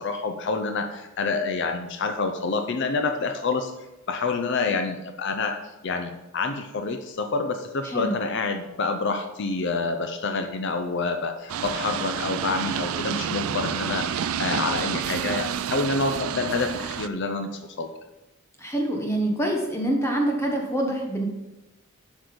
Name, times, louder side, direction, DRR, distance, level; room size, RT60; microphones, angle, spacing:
voice 1, 0.0-3.7 4.1-5.6 5.8-17.9, left 4 dB, 55° left, 7 dB, 0.5 m, -27 dB
sound 1, 11.5-17.1, right 8 dB, 75° right, 0.4 m, -29 dB
voice 2, 18.6-21.3, right 1 dB, 10° left, 1 dB, 1.1 m, -25 dB
7.8 x 6.3 x 5.1 m, 1.0 s
head